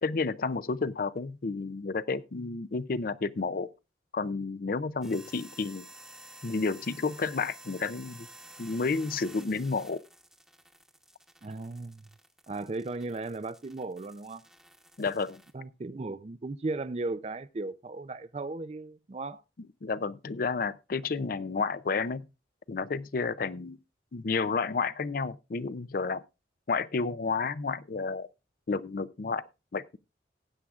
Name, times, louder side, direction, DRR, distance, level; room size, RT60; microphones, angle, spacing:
voice 1, 0.0-3.7 4.1-5.9 6.4-8.3 8.6-10.0 15.0-15.4 19.8-22.2 22.7-23.8 24.1-26.2 26.7-28.3 28.7-29.4 29.7-30.0, left 4 dB, 55° left, 0.5 m, -31 dB
sound 1, 5.0-15.5, right 1 dB, 5° right, 1.0 m, -52 dB
voice 2, 11.4-12.1 12.5-14.4 15.5-19.4, right 3 dB, 35° right, 0.4 m, -36 dB
18.5 x 8.4 x 2.4 m
head